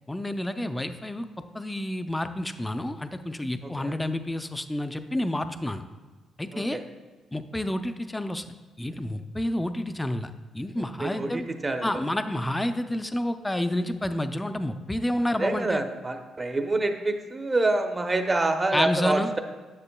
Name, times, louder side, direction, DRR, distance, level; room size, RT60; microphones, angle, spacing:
voice 1, 0.1-1.3 1.5-5.8 6.4-6.8 7.3-8.4 8.8-11.5 11.8-15.8 18.7-19.3, left 1 dB, 10° left, 9 dB, 0.4 m, -29 dB
voice 2, 3.6-4.0 6.5-6.8 11.0-12.0 15.4-19.4, right 2 dB, 25° right, 6 dB, 0.7 m, -27 dB
9.7 x 6.8 x 2.2 m, 1.4 s
cardioid pair, 90°, 0 cm